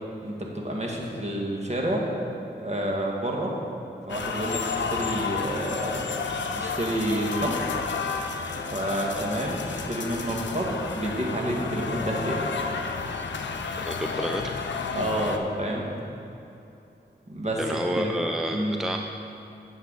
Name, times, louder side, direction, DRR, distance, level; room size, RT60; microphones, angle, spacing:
voice 1, 0.2-2.0 2.6-3.5 4.1-6.1 6.6-7.8 8.7-12.5 14.9-15.9 17.3-18.2 18.5-18.8, right 1 dB, 35° right, -1 dB, 1.7 m, -29 dB
sound 1, 4.1-15.4, left 5 dB, 85° left, 0.6 m, -31 dB
voice 2, 13.9-14.4 17.6-19.0, equal, ahead, 3 dB, 0.5 m, -29 dB
9.4 x 7.9 x 4.1 m, 2.8 s
cardioid pair, 45°, 18 cm